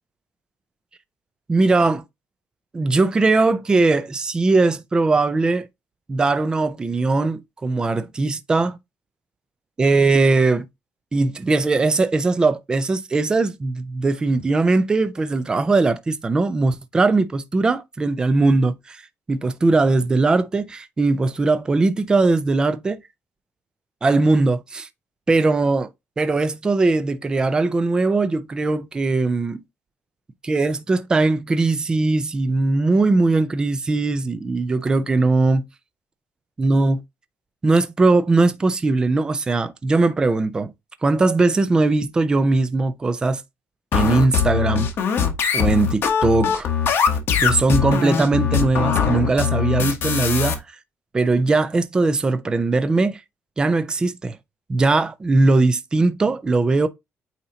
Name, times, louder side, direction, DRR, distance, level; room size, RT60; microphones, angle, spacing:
voice 1, 1.5-2.0 2.7-5.7 6.1-8.8 9.8-10.7 11.1-19.0 19.3-23.0 24.0-24.9 25.3-25.9 26.2-29.6 30.4-35.6 36.6-37.0 37.6-40.7 41.0-43.4 43.9-44.9 45.5-46.7 47.4-50.6 51.1-53.2 53.6-54.4 54.7-56.9, right 3 dB, 15° right, 0.4 m, -20 dB
sound 1, 43.9-50.5, left 7 dB, 50° left, 1.3 m, -21 dB
8.6 x 2.9 x 3.9 m
cardioid pair, 170°, 5 cm